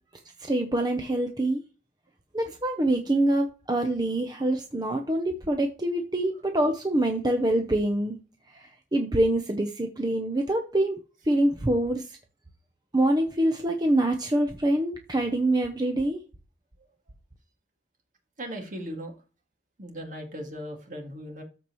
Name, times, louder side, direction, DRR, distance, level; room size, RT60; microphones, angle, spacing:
voice 1, 0.4-1.6 2.3-8.2 8.5-11.0 11.3-12.2 12.9-16.2, right 1 dB, 25° right, 4 dB, 0.7 m, -25 dB
voice 2, 18.4-19.2 19.8-21.4, equal, 45° right, 2 dB, 2.2 m, -38 dB
13.5 x 4.6 x 3.1 m, 0.35 s
head